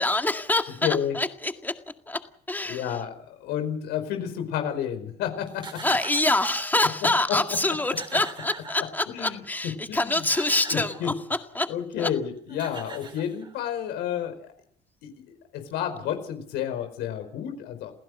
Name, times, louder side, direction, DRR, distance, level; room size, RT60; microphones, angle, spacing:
voice 1, 0.0-1.8 2.1-2.2 2.5-2.8 5.8-11.1 11.6-11.7 12.0-12.1, left 2 dB, 10° left, 6 dB, 2.0 m, -25 dB
voice 2, 0.8-1.2 2.7-5.8 7.3-7.4 9.1-10.3 10.7-11.1 11.7-14.5 15.0-17.9, left 9 dB, 90° left, 7 dB, 5.0 m, -31 dB
sound 1, 5.5-6.8 7.4-7.5 7.7-9.3 10.0-11.1 12.2-12.3 12.5-13.8, right 4 dB, 30° right, 4.5 m, -42 dB
28.5 x 16.0 x 6.6 m, 0.62 s
cardioid pair, 110°, 17 cm